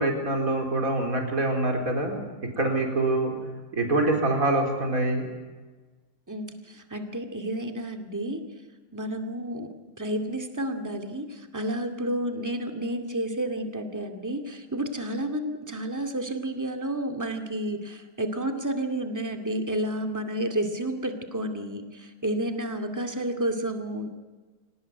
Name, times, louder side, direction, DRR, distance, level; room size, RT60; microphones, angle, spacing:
voice 1, 0.0-2.2 2.6-3.3 3.7-5.2, right 2 dB, 65° right, 3 dB, 4.6 m, -25 dB
voice 2, 6.3-8.4 8.9-24.1, right 1 dB, 10° right, 5 dB, 2.3 m, -31 dB
26.5 x 18.5 x 9.6 m, 1.3 s
omnidirectional pair, 1.6 m